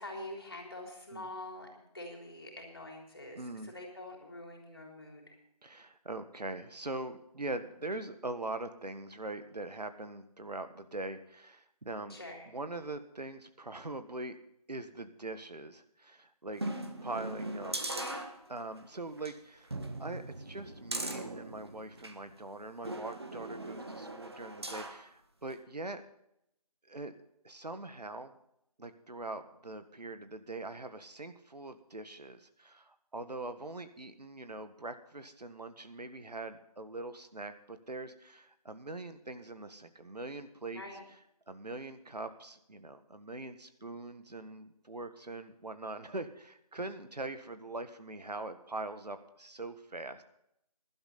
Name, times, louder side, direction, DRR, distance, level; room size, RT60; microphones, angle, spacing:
voice 1, 0.0-5.4 12.1-12.5 17.8-18.3 40.7-41.0, left 1 dB, 35° left, 1 dB, 3.6 m, -45 dB
voice 2, 3.3-3.7 5.6-12.2 12.5-14.4 14.7-16.6 17.0-17.8 18.5-26.0 26.9-27.1 27.4-28.4 28.8-40.8 41.5-50.2, right 2 dB, 85° right, 9 dB, 1.6 m, -42 dB
sound 1, 16.6-18.8 19.2-19.3 19.7-22.2 22.8-25.0 25.5-25.6, right 1 dB, 40° right, 1.4 m, -40 dB
16.5 x 11.5 x 4.1 m, 0.77 s
figure-of-eight pair, 180°, 20 cm